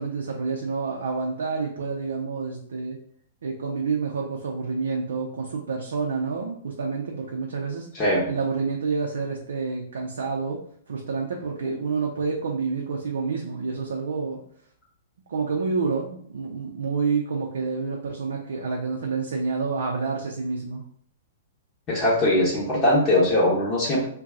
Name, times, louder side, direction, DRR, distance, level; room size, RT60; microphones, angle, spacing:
voice 1, 0.0-3.0 3.4-7.9 8.3-10.6 10.9-14.4 15.3-20.8, right 4 dB, 70° right, 0 dB, 0.5 m, -28 dB
voice 2, 21.9-24.1, left 1 dB, 30° left, -6 dB, 0.9 m, -21 dB
2.7 x 2.2 x 3.6 m, 0.62 s
figure-of-eight pair, 110°, 0 cm